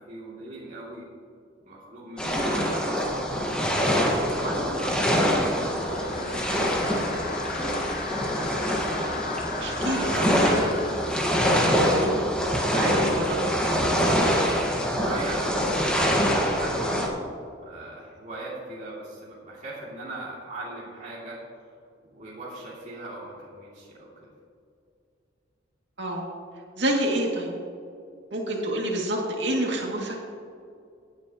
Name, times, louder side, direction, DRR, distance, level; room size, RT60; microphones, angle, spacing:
voice 1, 0.1-1.1 1.7-3.2 4.3-7.2 14.8-17.2 17.6-21.4 22.0-24.3, right 2 dB, 40° right, -7 dB, 2.8 m, -38 dB
sound 1, 2.2-17.1, equal, 5° left, 1.6 m, -25 dB
sound 2, 4.9-11.9, left 5 dB, 45° left, 1.1 m, -38 dB
voice 2, 9.6-10.7 11.8-12.2 12.7-14.1 26.0-26.3 26.8-27.5 28.3-30.2, right 1 dB, 65° right, -2 dB, 2.5 m, -28 dB
18.0 x 9.6 x 3.0 m, 2.5 s
head